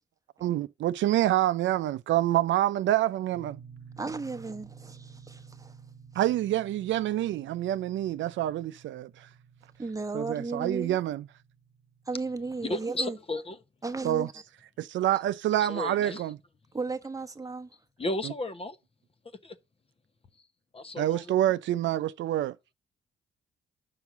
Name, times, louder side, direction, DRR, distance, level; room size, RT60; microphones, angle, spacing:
voice 1, 0.4-3.6 6.2-9.1 10.1-11.3 14.0-14.3 14.9-16.4 18.2-18.3 21.0-22.5, right 13 dB, 70° right, 0.5 m, -27 dB
sound 1, 3.3-12.9, right 6 dB, 40° right, 1.4 m, -52 dB
voice 2, 4.0-5.7 9.8-11.0 12.1-13.2 13.8-14.3 16.7-17.7, right 3 dB, 15° right, 1.1 m, -35 dB
voice 3, 12.6-13.6 15.6-16.2 18.0-18.8 19.4-19.6 20.7-21.3, left 2 dB, 30° left, 1.0 m, -34 dB
5.8 x 5.5 x 6.0 m
cardioid pair, 90°, 20 cm